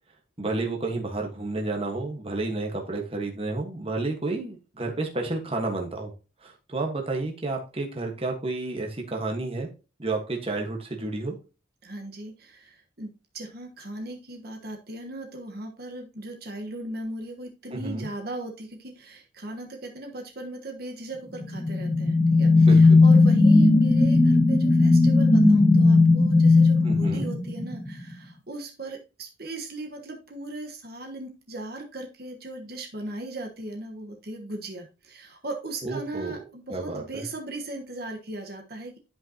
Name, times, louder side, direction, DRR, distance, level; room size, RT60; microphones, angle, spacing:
voice 1, 0.4-6.1 6.4-9.7 10.0-11.4 17.7-18.1 22.5-23.0 26.8-27.3 35.8-36.4 36.7-37.3, right 2 dB, 30° right, 2 dB, 1.4 m, -31 dB
voice 2, 11.8-39.0, right 2 dB, 50° right, 2 dB, 1.3 m, -38 dB
sound 1, 21.4-27.9, left 3 dB, 10° left, 0.6 m, -17 dB
11.0 x 5.4 x 2.9 m, 0.32 s
head